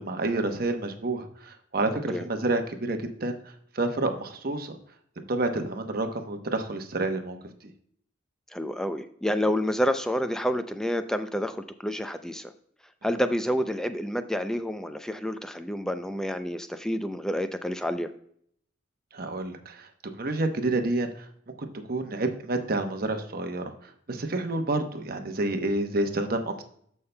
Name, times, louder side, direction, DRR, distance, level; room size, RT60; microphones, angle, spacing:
voice 1, 0.0-3.4 3.7-4.8 5.2-7.4 19.1-19.9 20.1-21.5 21.9-23.7 24.1-26.6, right 2 dB, 50° right, 6 dB, 0.9 m, -29 dB
voice 2, 8.5-12.5 13.0-18.1, equal, 5° left, 9 dB, 0.4 m, -29 dB
14.5 x 5.6 x 2.2 m, 0.65 s
head